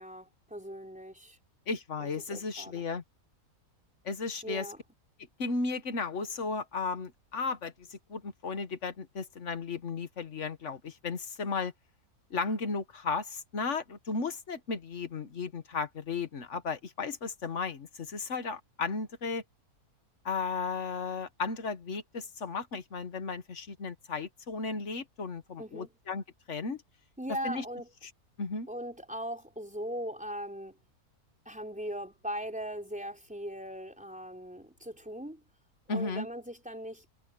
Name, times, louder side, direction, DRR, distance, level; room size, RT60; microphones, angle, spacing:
voice 1, 0.0-1.4 2.0-2.9 4.4-4.8 25.6-25.9 27.2-27.9 28.7-30.8 31.5-35.4 35.9-37.0, equal, 5° right, 4.2 m, -39 dB
voice 2, 1.7-3.0 4.1-4.7 5.4-11.7 12.3-19.4 20.3-26.2 26.5-26.8 27.4-27.6 28.4-28.7 35.9-36.3, left 4 dB, 55° left, 1.6 m, -35 dB
omnidirectional pair, 1.6 m